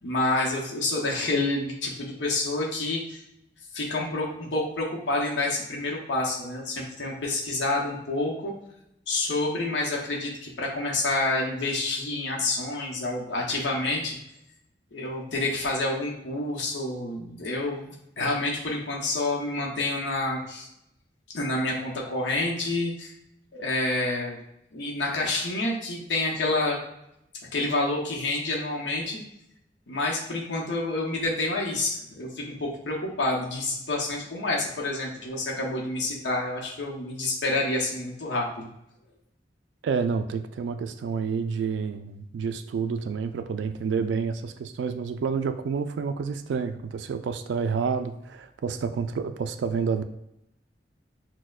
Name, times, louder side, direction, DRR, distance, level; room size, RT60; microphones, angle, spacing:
voice 1, 0.0-3.2 3.7-8.5 9.1-14.2 14.9-20.7 21.3-23.1 23.5-24.4 24.7-26.8 27.5-29.2 29.9-38.7, left 2 dB, 75° left, -2 dB, 0.8 m, -28 dB
voice 2, 39.8-50.0, right 5 dB, 70° right, 9 dB, 0.3 m, -29 dB
6.2 x 2.1 x 2.3 m, 0.81 s
head